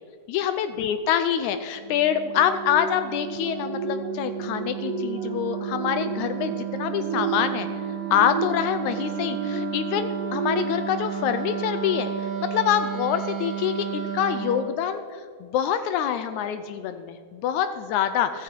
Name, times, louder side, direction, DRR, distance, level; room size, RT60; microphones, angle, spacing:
voice 1, 0.3-7.7 8.1-18.4, left 9 dB, 80° left, 10 dB, 1.9 m, -26 dB
Wind instrument woodwind instrument, 1.8-14.7, right 9 dB, 55° right, 2.0 m, -33 dB
sound 1, 2.3-12.2 12.7-12.9, right 4 dB, 85° right, 2.7 m, -33 dB
15.0 x 13.5 x 4.5 m, 2.2 s
omnidirectional pair, 3.6 m